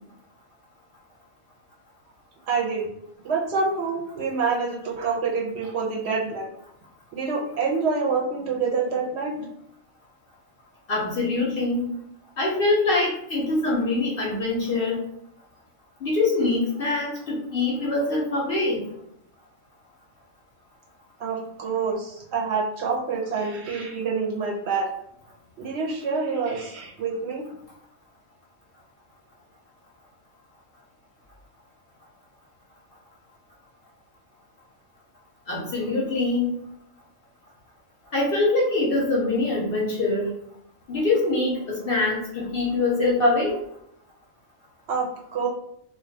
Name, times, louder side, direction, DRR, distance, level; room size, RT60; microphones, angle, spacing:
voice 1, 2.5-2.9 3.2-6.5 7.1-9.3 21.2-24.9 25.6-27.4 44.9-45.5, right 4 dB, 65° right, -3 dB, 0.8 m, -27 dB
voice 2, 10.9-11.9 12.4-15.0 16.0-18.8 35.5-36.6 38.1-40.3 40.9-43.6, left 2 dB, 60° left, -3 dB, 0.6 m, -24 dB
2.2 x 2.2 x 2.6 m, 0.73 s
omnidirectional pair, 1.3 m